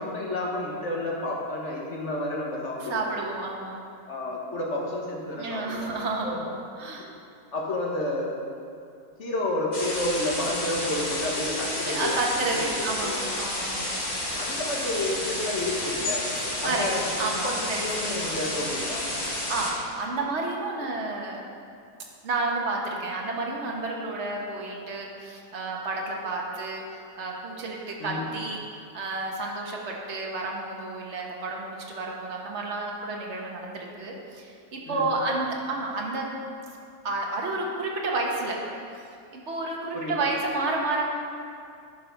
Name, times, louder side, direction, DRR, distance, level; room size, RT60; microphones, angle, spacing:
voice 1, 0.0-3.1 4.1-6.0 6.2-6.4 7.5-8.3 9.2-12.2 12.5-13.3 14.4-16.2 16.6-17.1 17.4-19.0 28.0-28.3 34.9-35.2 39.9-40.2, left 1 dB, 50° left, -2 dB, 1.7 m, -30 dB
voice 2, 2.9-3.9 5.4-7.1 11.8-14.1 16.6-16.8 17.2-17.5 17.8-17.9 19.3-21.4 22.2-28.6 28.9-36.4 37.0-38.6 39.3-41.1, right 2 dB, 50° right, -1 dB, 1.4 m, -31 dB
sound 1, 9.7-19.7, left 1 dB, 30° left, 1.5 m, -31 dB
10.5 x 5.8 x 5.3 m, 2.4 s
omnidirectional pair, 1.6 m